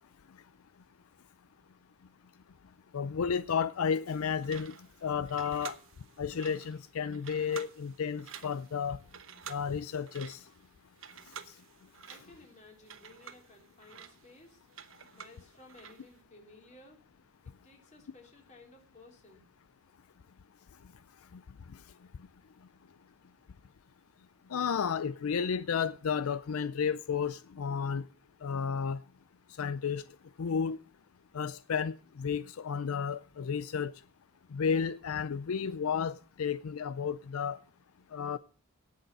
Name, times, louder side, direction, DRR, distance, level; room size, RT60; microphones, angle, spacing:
voice 1, 2.9-4.7 5.0-5.8 6.2-9.0 9.5-10.4 24.5-28.0 28.4-29.0 29.6-30.0 30.4-30.8 31.3-33.9 34.5-37.6 38.1-38.4, left 6 dB, 85° left, 0.5 m, -32 dB
sound 1, 4.1-16.2, right 7 dB, 70° right, 1.0 m, -50 dB
voice 2, 12.1-14.7 15.1-17.0 17.4-19.5, left 2 dB, 35° left, 3.4 m, -56 dB
18.0 x 6.6 x 5.4 m
head